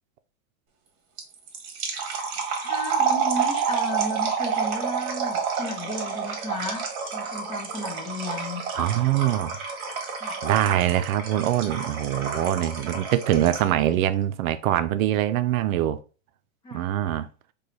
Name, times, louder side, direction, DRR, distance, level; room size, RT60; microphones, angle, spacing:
sound 1, 1.2-13.8, right 6 dB, 50° right, 1.4 m, -29 dB
voice 1, 2.1-6.9 7.1-8.6 10.2-10.4 16.6-16.8, left 1 dB, 10° left, 0.5 m, -34 dB
voice 2, 8.7-9.6 10.4-16.0 16.7-17.3, right 12 dB, 75° right, 0.5 m, -23 dB
4.8 x 2.3 x 3.9 m
supercardioid pair, 145°, 42 cm